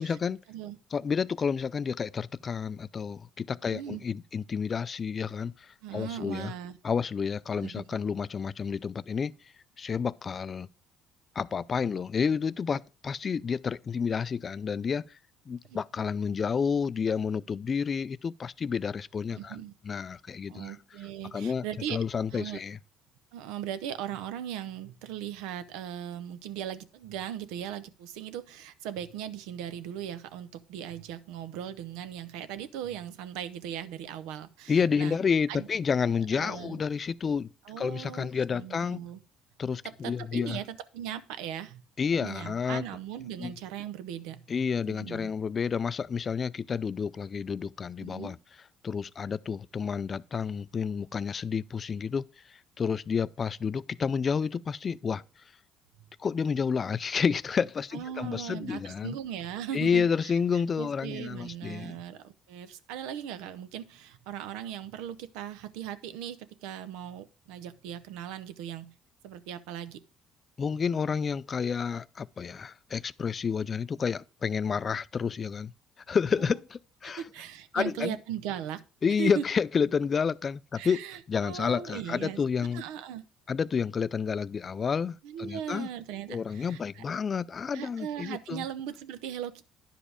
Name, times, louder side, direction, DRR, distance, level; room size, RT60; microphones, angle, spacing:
voice 1, 0.0-0.4 0.9-6.5 6.8-9.3 9.8-10.7 11.4-15.1 15.5-19.6 19.8-20.8 21.3-21.6 21.9-22.8 34.7-37.5 37.8-39.0 39.6-40.6 42.0-42.9 43.4-43.5 44.5-48.4 48.8-55.2 56.2-59.2 59.7-62.0 70.6-75.7 76.1-77.2 77.7-78.1 79.0-82.8 83.5-85.9 86.3-88.6, left 6 dB, 35° left, 0.3 m, -30 dB
voice 2, 3.7-4.0 5.8-6.8 7.5-7.8 15.6-15.8 19.3-19.7 20.5-22.0 22.3-22.6 23.3-35.2 35.5-35.7 36.3-36.8 37.7-39.2 39.8-41.8 42.2-44.4 44.9-45.3 48.0-48.3 57.9-60.3 60.8-68.9 69.2-70.0 76.4-76.6 77.0-78.8 79.2-79.4 80.8-82.4 82.7-83.2 85.2-87.0 87.7-89.6, right 10 dB, 85° right, 0.7 m, -38 dB
10.0 x 5.1 x 4.9 m
cardioid pair, 100°, 0 cm